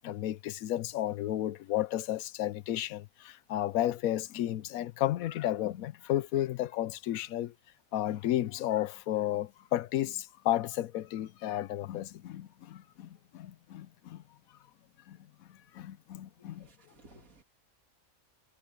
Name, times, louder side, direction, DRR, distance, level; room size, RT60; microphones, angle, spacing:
voice 1, 0.0-7.5 7.9-14.2 15.1-15.2 15.5-16.7, left 13 dB, 90° left, 1.1 m, -33 dB
voice 2, 16.4-17.4, right 2 dB, 85° right, 2.7 m, -58 dB
omnidirectional pair, 1.4 m